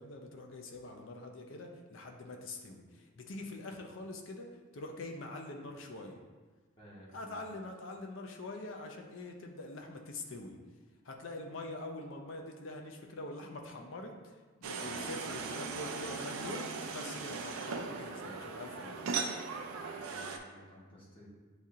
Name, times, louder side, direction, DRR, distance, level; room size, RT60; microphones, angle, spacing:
voice 1, 0.0-4.5 4.7-6.2 7.1-10.6 11.0-19.0, left 2 dB, 65° left, 3 dB, 0.5 m, -44 dB
voice 2, 6.8-7.4 19.7-21.3, equal, 25° left, -7 dB, 0.9 m, -55 dB
sound 1, 14.6-20.4, right 4 dB, 75° right, 0.4 m, -39 dB
8.0 x 2.8 x 2.4 m, 1.4 s
head